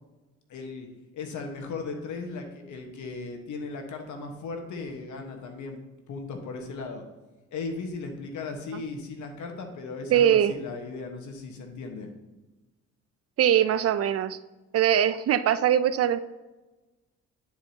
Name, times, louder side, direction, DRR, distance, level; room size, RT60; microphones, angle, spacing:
voice 1, 0.5-0.9 1.1-5.8 6.1-7.0 7.5-12.1, left 4 dB, 75° left, 4 dB, 1.3 m, -37 dB
voice 2, 10.1-10.5 13.4-14.4 14.7-16.2, right 10 dB, 55° right, 14 dB, 0.4 m, -22 dB
10.0 x 4.8 x 2.8 m, 1.1 s
cardioid pair, 90°, 30 cm